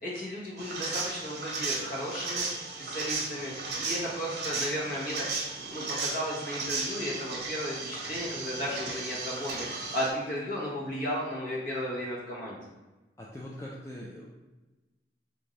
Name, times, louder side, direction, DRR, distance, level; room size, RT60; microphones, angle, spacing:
voice 1, 0.0-2.5 2.8-5.2 5.6-12.6, equal, 50° left, -5 dB, 1.1 m, -34 dB
sound 1, 0.6-10.1, right 3 dB, 65° right, 0.8 m, -35 dB
voice 2, 13.2-14.3, left 1 dB, 15° left, -4 dB, 0.3 m, -42 dB
3.6 x 2.6 x 3.2 m, 1.1 s
head